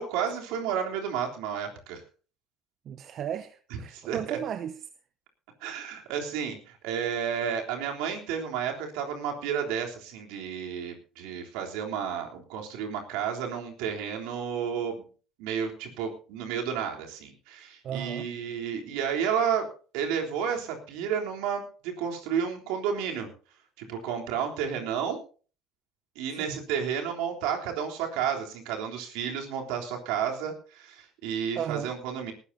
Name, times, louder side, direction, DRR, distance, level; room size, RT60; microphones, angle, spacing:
voice 1, 0.0-2.0 3.7-4.4 5.6-15.0 15.4-19.7 19.9-23.3 23.8-25.2 26.2-32.3, right 7 dB, 75° right, 3.5 m, -31 dB
voice 2, 2.9-4.7 17.8-18.3 26.3-26.6 31.6-31.9, right 9 dB, 55° right, 0.8 m, -34 dB
19.5 x 13.5 x 2.8 m
hypercardioid pair, 65°, 0 cm